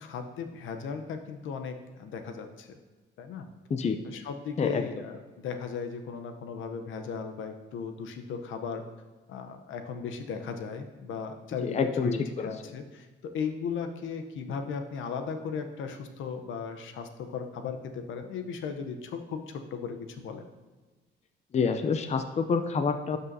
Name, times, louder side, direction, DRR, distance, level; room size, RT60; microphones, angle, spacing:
voice 1, 0.0-2.7 3.2-3.5 4.0-8.8 9.3-20.5, left 6 dB, 80° left, 6 dB, 0.8 m, -37 dB
voice 2, 11.6-12.5 21.5-23.2, left 5 dB, 35° left, 8 dB, 0.5 m, -27 dB
11.5 x 5.5 x 2.7 m, 1.3 s
cardioid pair, 90°, 20 cm